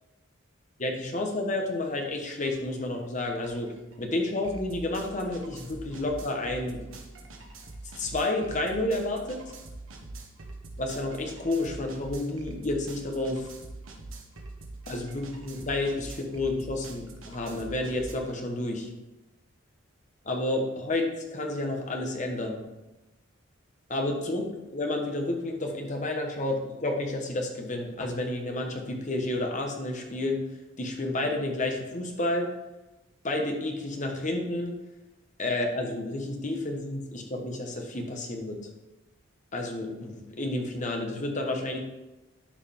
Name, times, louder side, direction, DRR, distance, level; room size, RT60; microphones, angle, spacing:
voice 1, 0.8-3.7 4.0-6.9 8.0-9.5 10.8-13.5 14.9-18.9 20.2-22.6 23.9-24.5 24.7-30.4 30.8-32.5 33.2-34.7 35.4-38.6 39.5-41.8, left 2 dB, 40° left, 2 dB, 1.3 m, -30 dB
sound 1, 2.5-2.6 2.9-18.1, right 2 dB, 90° right, 1.3 m, -44 dB
12.0 x 4.9 x 3.5 m, 1.0 s
head